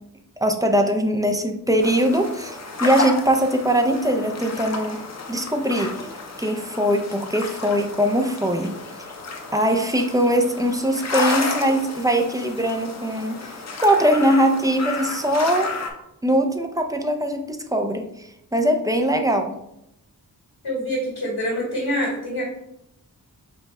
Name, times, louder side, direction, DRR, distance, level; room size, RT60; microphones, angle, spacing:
voice 1, 0.4-5.0 5.3-6.1 6.4-8.7 9.5-13.4 13.8-15.7 16.2-18.0 18.5-19.5, equal, 10° right, 4 dB, 0.5 m, -21 dB
sound 1, 1.8-15.9, left 3 dB, 45° left, 0.7 m, -32 dB
voice 2, 20.6-22.4, equal, 80° left, -5 dB, 1.8 m, -25 dB
5.4 x 2.3 x 4.2 m, 0.82 s
wide cardioid pair, 95°, 37 cm